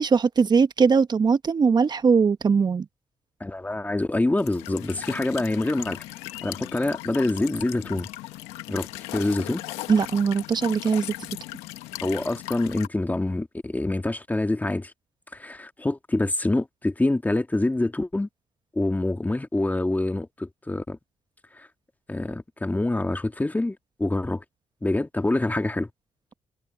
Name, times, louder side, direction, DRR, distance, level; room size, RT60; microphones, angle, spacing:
voice 1, 0.0-2.8 9.9-11.1, right 5 dB, 45° right, 1.3 m, -20 dB
voice 2, 3.4-6.0 6.4-8.1 8.7-8.9 9.1-9.6 12.0-14.9 15.3-18.3 18.8-21.0 21.6-21.7 22.1-24.4 24.8-25.9, left 2 dB, 15° left, 2.1 m, -26 dB
Walk footsteps / Chirp tweet / Stream, 4.4-12.9, left 17 dB, 90° left, 1.4 m, -37 dB
supercardioid pair, 55°, 10 cm